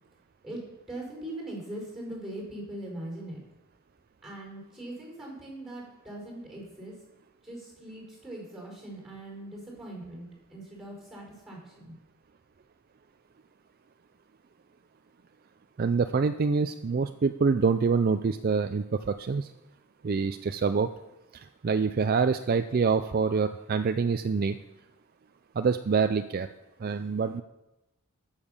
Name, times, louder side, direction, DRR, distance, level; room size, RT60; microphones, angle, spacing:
voice 1, 0.9-3.4 4.2-6.9 7.4-11.9, right 1 dB, ahead, -2 dB, 4.9 m, -41 dB
voice 2, 15.8-19.5 20.0-20.9 21.3-24.6 25.6-26.5 26.8-27.4, right 5 dB, 40° right, 10 dB, 0.4 m, -26 dB
14.0 x 7.3 x 6.6 m, 0.98 s
head